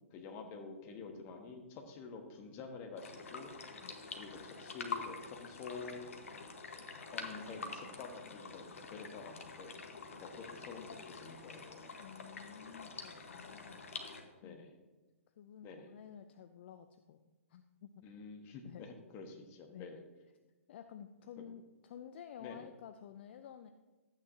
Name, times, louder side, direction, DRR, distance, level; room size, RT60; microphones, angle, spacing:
voice 1, 0.1-3.5 4.1-6.0 7.1-9.7 10.2-11.8 14.4-14.7 15.6-15.9 18.0-20.0 21.4-21.5 22.4-22.7, left 4 dB, 30° left, 4 dB, 1.4 m, -48 dB
sound 1, 3.0-14.2, left 4 dB, 65° left, 1.3 m, -47 dB
voice 2, 12.0-14.6 15.4-17.9 18.6-18.8 19.7-19.9 20.7-23.7, left 8 dB, 50° left, 9 dB, 0.5 m, -52 dB
12.5 x 9.0 x 2.8 m, 1.2 s
figure-of-eight pair, 120°, 8 cm